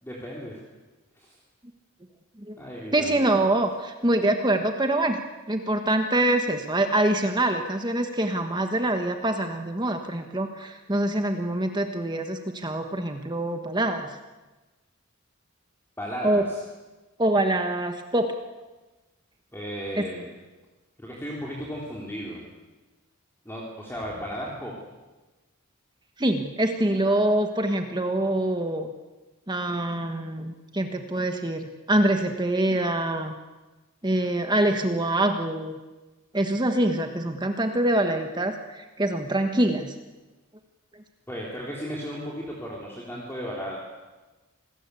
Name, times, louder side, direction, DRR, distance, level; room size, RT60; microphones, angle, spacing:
voice 1, 0.0-0.6 1.2-1.4 2.6-3.3 16.0-16.6 19.5-20.3 21.0-22.5 23.5-24.7 41.3-43.8, equal, 10° left, -4 dB, 3.7 m, -35 dB
voice 2, 2.9-5.2 5.5-14.1 16.2-16.5 17.2-18.3 20.0-20.1 26.2-28.9 29.5-33.3 34.0-35.7 36.3-39.9, right 1 dB, 20° right, 5 dB, 1.4 m, -25 dB
27.5 x 20.0 x 8.4 m, 1.2 s
head